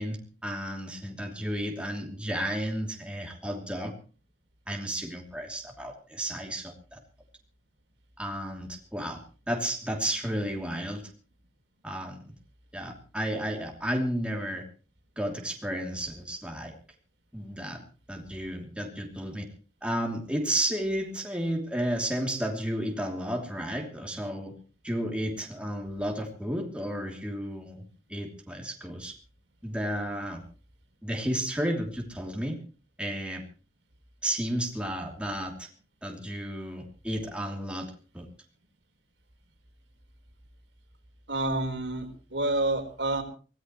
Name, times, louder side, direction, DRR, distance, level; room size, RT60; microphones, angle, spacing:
voice 1, 0.0-3.9 4.7-7.0 8.2-11.0 11.8-12.2 12.7-14.6 15.2-16.7 17.3-17.8 18.1-19.5 19.8-24.6 24.8-27.8 28.1-29.1 29.6-30.4 31.0-32.6 33.0-33.4 34.2-35.7 36.0-38.3, equal, 5° right, 1 dB, 2.9 m, -32 dB
voice 2, 41.3-43.2, right 2 dB, 80° right, 5 dB, 4.1 m, -28 dB
24.0 x 18.0 x 3.1 m, 0.36 s
head